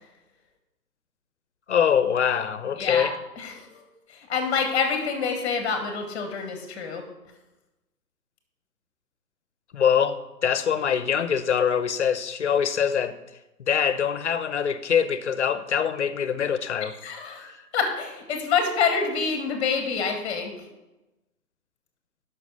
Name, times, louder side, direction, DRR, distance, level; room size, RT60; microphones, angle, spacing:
voice 1, 1.7-3.1 9.7-13.2 13.6-16.9, left 8 dB, 45° left, 13 dB, 0.8 m, -24 dB
voice 2, 2.7-3.1 3.4-7.0 17.0-20.5, left 5 dB, 10° left, 5 dB, 1.5 m, -27 dB
9.2 x 6.0 x 6.7 m, 1.0 s
hypercardioid pair, 150°, 48 cm